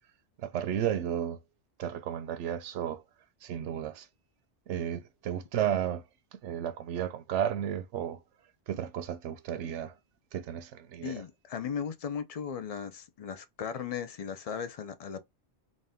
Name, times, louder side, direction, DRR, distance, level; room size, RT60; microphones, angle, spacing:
voice 1, 0.4-1.4 1.8-3.0 3.4-4.1 4.7-6.0 6.3-8.2 8.7-9.9 10.3-11.2, right 10 dB, 80° right, 0.9 m, -33 dB
voice 2, 11.0-15.2, left 7 dB, 65° left, 0.3 m, -37 dB
4.1 x 2.5 x 3.4 m
omnidirectional pair, 1.2 m